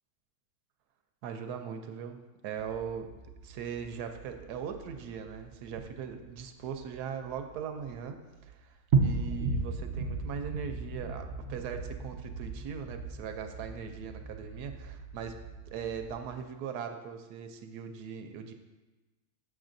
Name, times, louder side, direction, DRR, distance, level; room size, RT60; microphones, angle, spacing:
voice 1, 1.2-3.1 3.4-8.7 9.0-15.4 15.7-18.5, right 7 dB, 85° right, 6 dB, 1.1 m, -40 dB
sound 1, 2.7-8.0 8.3-8.5 8.9-16.3, right 4 dB, 60° right, 0.7 m, -36 dB
7.1 x 6.2 x 2.6 m, 1.2 s
omnidirectional pair, 1.7 m